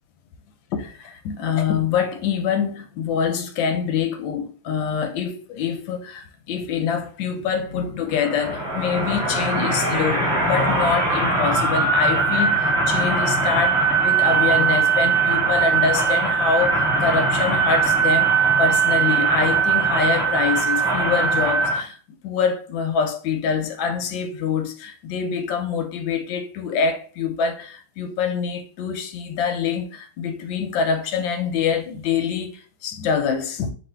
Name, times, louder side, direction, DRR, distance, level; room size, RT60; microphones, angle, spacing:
voice 1, 0.7-22.0 22.2-33.7, left 6 dB, 75° left, 1.2 m, -25 dB
sound 1, 8.1-21.8, right 4 dB, 5° right, 0.3 m, -20 dB
3.5 x 2.6 x 4.2 m
omnidirectional pair, 2.3 m